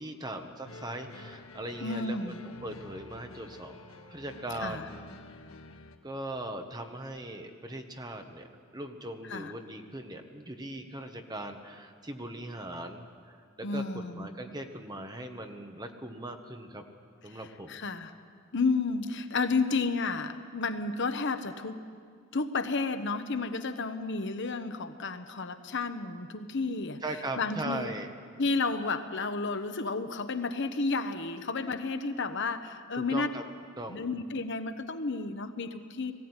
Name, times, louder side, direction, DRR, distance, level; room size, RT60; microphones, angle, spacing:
voice 1, 0.0-5.0 6.0-16.8 17.2-17.8 27.0-28.1 32.9-33.4 33.8-34.0, right 1 dB, 20° right, 5 dB, 1.3 m, -40 dB
sound 1, 0.6-6.0, left 2 dB, 80° left, 1.4 m, -49 dB
voice 2, 1.8-2.4 4.6-4.9 9.3-9.5 13.6-14.3 17.3-17.4 17.7-18.1 18.5-21.8 22.3-27.0 27.4-27.9 28.4-33.3 33.9-36.1, left 3 dB, 60° left, 9 dB, 1.0 m, -31 dB
20.0 x 15.5 x 9.8 m, 2.1 s
head